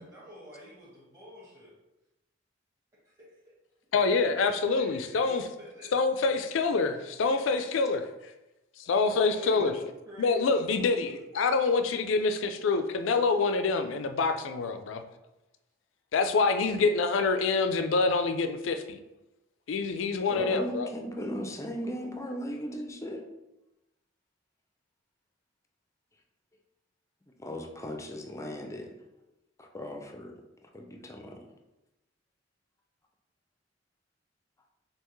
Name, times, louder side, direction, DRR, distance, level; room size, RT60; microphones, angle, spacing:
voice 1, 0.0-1.7 3.0-3.1 4.0-5.9 9.0-11.2, left 1 dB, 15° right, -9 dB, 1.4 m, -47 dB
voice 2, 3.9-5.5 5.9-8.0 8.9-9.7 10.2-15.0 16.1-19.0 19.7-20.9, left 4 dB, 75° left, 8 dB, 0.4 m, -26 dB
voice 3, 20.3-23.2 27.4-28.9 29.7-30.4 30.7-31.4, equal, 15° left, 4 dB, 0.5 m, -37 dB
5.6 x 2.9 x 3.1 m, 0.96 s
head